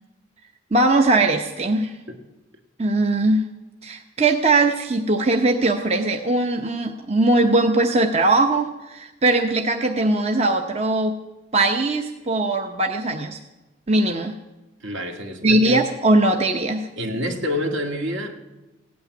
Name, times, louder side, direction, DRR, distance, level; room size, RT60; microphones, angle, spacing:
voice 1, 0.7-1.9 2.8-3.5 3.8-11.2 11.5-13.4 13.9-14.3 15.4-16.9, right 2 dB, 30° right, 4 dB, 0.7 m, -20 dB
voice 2, 14.8-15.8 17.0-18.4, left 1 dB, 70° right, 3 dB, 1.9 m, -27 dB
16.0 x 8.7 x 9.3 m, 1.1 s
head